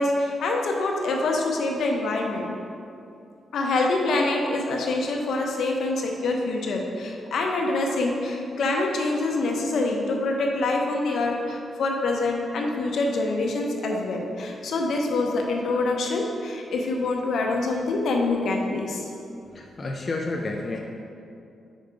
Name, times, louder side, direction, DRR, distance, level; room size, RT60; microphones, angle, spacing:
voice 1, 0.0-2.5 3.5-19.0, left 2 dB, 65° left, 1 dB, 0.8 m, -25 dB
voice 2, 19.5-20.8, left 2 dB, 30° left, 0 dB, 0.4 m, -30 dB
5.2 x 4.5 x 5.0 m, 2.6 s
wide cardioid pair, 160°, 0 cm